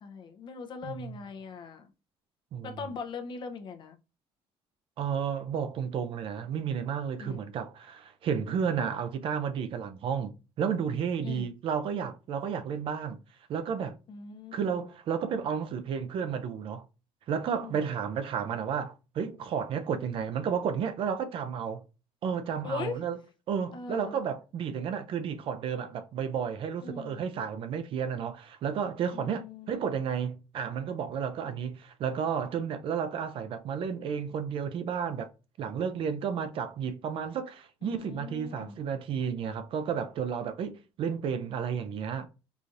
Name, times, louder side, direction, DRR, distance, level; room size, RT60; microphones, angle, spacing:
voice 1, 0.0-1.9 2.6-4.0 7.2-7.4 11.2-11.5 14.1-14.8 17.6-17.8 22.6-23.0 23.7-24.2 26.8-27.2 29.1-29.7 37.8-38.8, left 5 dB, 50° left, 0.6 m, -40 dB
voice 2, 0.8-1.2 2.5-2.8 5.0-13.2 13.5-14.0 14.5-16.8 17.3-21.8 22.2-23.2 23.5-35.3 35.6-42.3, right 7 dB, 55° right, 0.5 m, -32 dB
4.9 x 2.6 x 2.5 m
cardioid pair, 130°, 11 cm